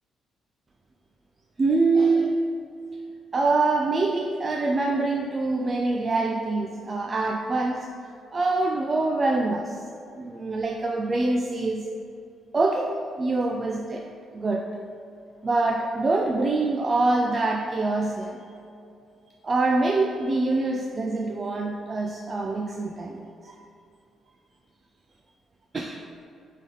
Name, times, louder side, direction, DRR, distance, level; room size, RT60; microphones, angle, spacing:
voice 1, 1.6-2.5 3.3-7.9 8.3-9.8 10.1-11.9 12.5-14.1 14.3-14.7 15.4-18.4 19.4-23.6 25.7-26.0, right 3 dB, 35° right, 1 dB, 0.5 m, -25 dB
8.1 x 3.6 x 3.8 m, 2.5 s
cardioid pair, 90°, 0 cm